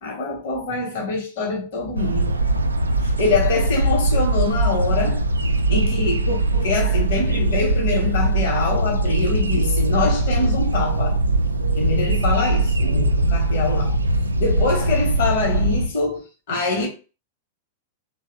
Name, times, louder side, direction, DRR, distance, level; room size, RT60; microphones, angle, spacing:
voice 1, 0.0-2.4 3.0-5.2 5.7-11.2 11.7-14.0 14.4-16.9, left 3 dB, 55° left, 0.9 m, -24 dB
sound 1, 2.0-15.9, right 2 dB, 80° right, 0.3 m, -21 dB
2.9 x 2.0 x 2.6 m
figure-of-eight pair, 95°, 0 cm